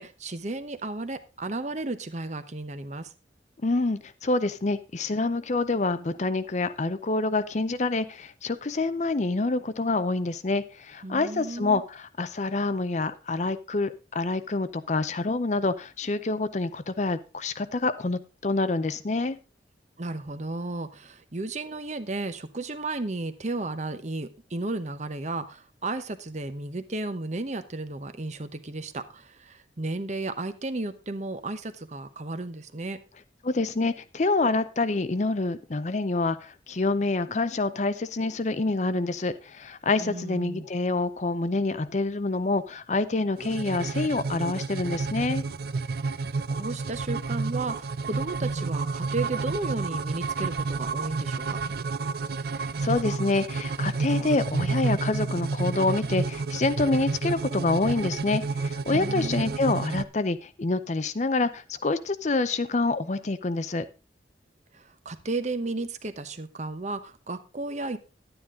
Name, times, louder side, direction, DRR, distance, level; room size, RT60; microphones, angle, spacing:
voice 1, 0.0-3.1 11.0-11.8 20.0-33.0 40.0-40.7 46.3-51.6 58.9-59.6 64.7-68.0, right 2 dB, 40° right, 11 dB, 0.9 m, -34 dB
voice 2, 3.6-19.4 33.4-45.4 52.6-63.9, left 3 dB, 40° left, 13 dB, 0.6 m, -27 dB
sound 1, 43.4-60.0, right 4 dB, 55° right, 0.5 m, -30 dB
11.0 x 9.6 x 3.7 m, 0.30 s
head